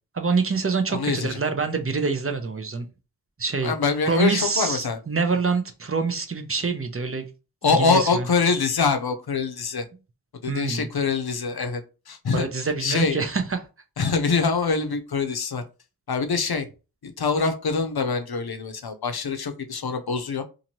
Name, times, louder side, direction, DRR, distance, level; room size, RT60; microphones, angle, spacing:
voice 1, 0.1-2.9 3.4-3.7 4.1-7.3 7.6-8.3 10.5-10.9 12.3-13.6, right 4 dB, 35° right, 0.5 m, -25 dB
voice 2, 0.9-1.4 3.6-5.0 7.6-9.9 10.4-11.8 12.1-12.5 12.8-13.2 14.0-15.6 16.1-16.7 17.0-20.4, left 5 dB, 70° left, 0.6 m, -24 dB
2.7 x 2.6 x 2.9 m
wide cardioid pair, 40°, 39 cm